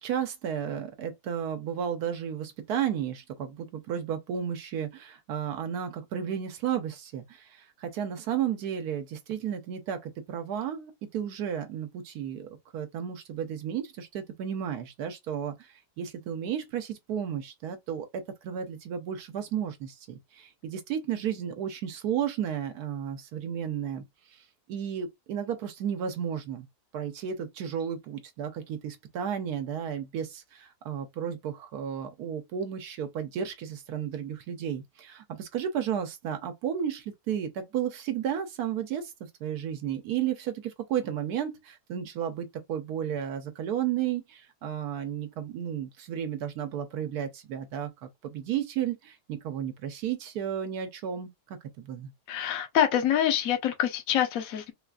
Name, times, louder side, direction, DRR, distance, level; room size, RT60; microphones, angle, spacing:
voice 1, 0.0-24.0 24.3-24.4 24.7-26.7 26.9-39.1 39.4-52.1, right 9 dB, 80° right, 1.1 m, -33 dB
voice 2, 52.3-54.7, left 10 dB, 65° left, 1.1 m, -26 dB
3.8 x 2.4 x 2.3 m
omnidirectional pair, 1.7 m